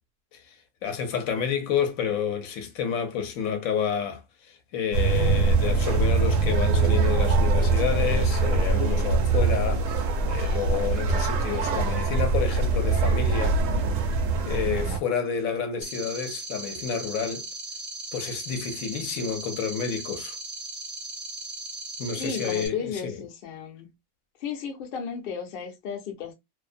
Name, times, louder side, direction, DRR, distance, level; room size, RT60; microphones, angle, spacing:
voice 1, 0.8-4.2 4.5-13.6 14.4-17.4 18.1-20.4 22.0-23.2, left 7 dB, 75° left, 1.0 m, -29 dB
sound 1, 4.9-15.0, right 3 dB, 70° right, 0.9 m, -23 dB
sound 2, 15.8-22.7, right 2 dB, 45° right, 0.6 m, -37 dB
voice 2, 22.2-23.9 24.4-26.3, left 6 dB, 55° left, 0.6 m, -34 dB
2.5 x 2.0 x 2.4 m
omnidirectional pair, 1.5 m